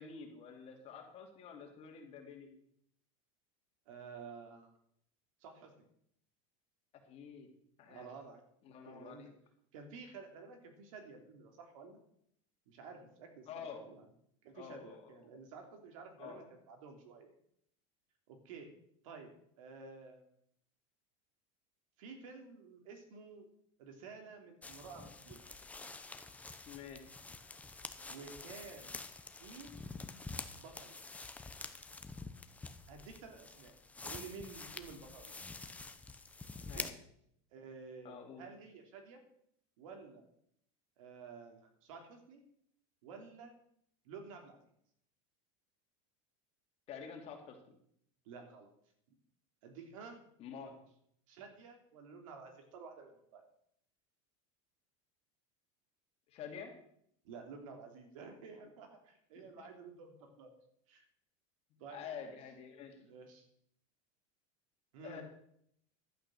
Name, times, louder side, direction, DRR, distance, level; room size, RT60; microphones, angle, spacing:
voice 1, 0.0-2.5 7.1-7.5 7.8-8.1 8.6-9.3 13.5-13.8 14.5-15.1 16.2-16.4 26.7-27.1 36.7-36.9 38.0-38.5 46.9-47.8 50.4-50.7 56.3-56.7 59.4-59.6 61.9-63.0 65.0-65.2, left 6 dB, 40° left, 3 dB, 2.7 m, -48 dB
voice 2, 3.9-4.7 5.4-5.8 7.8-8.4 8.8-9.3 9.7-12.0 12.7-14.1 14.4-17.3 18.3-18.7 19.0-19.3 19.6-20.2 22.0-23.4 23.8-25.4 28.1-29.0 29.4-29.7 30.5-31.0 32.9-33.7 34.0-35.5 36.7-36.9 37.5-39.2 39.8-40.2 41.0-42.4 43.0-43.5 44.0-44.6 48.2-48.7 49.6-50.2 51.3-53.4 57.2-60.5 60.9-61.0 61.8-62.4 63.0-63.5 64.9-65.2, right 5 dB, 80° right, 4 dB, 3.1 m, -51 dB
sound 1, 24.6-36.9, left 3 dB, 10° left, 0.8 m, -48 dB
11.5 x 8.9 x 6.4 m, 0.70 s
supercardioid pair, 145°, 17 cm